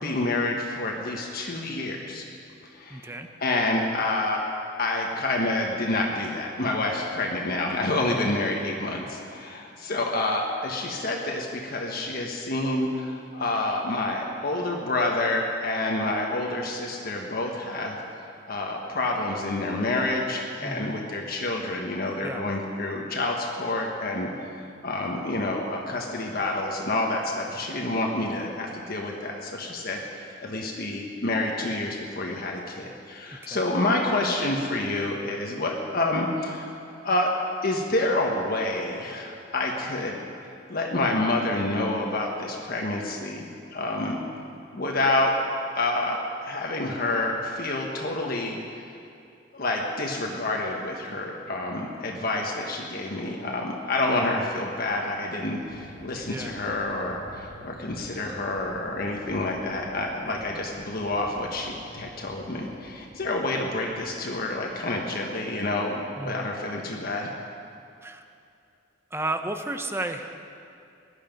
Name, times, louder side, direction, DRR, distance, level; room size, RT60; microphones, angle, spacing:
voice 1, 0.0-2.2 2.7-3.1 3.4-4.5 4.8-24.3 24.8-36.8 37.0-37.3 37.6-40.2 40.7-44.2 44.7-45.3 45.7-48.6 49.5-67.3, left 2 dB, 50° left, 0 dB, 1.3 m, -28 dB
voice 2, 2.9-3.3 8.1-8.4 20.6-21.0 22.2-22.4 33.3-33.7 56.3-56.5 60.3-60.5 66.2-66.5 68.0-68.2 69.1-70.4, right 2 dB, 15° right, 7 dB, 0.8 m, -33 dB
sound 1, 55.6-65.0, equal, 70° right, 3.6 m, -49 dB
19.0 x 11.5 x 5.3 m, 2.5 s
head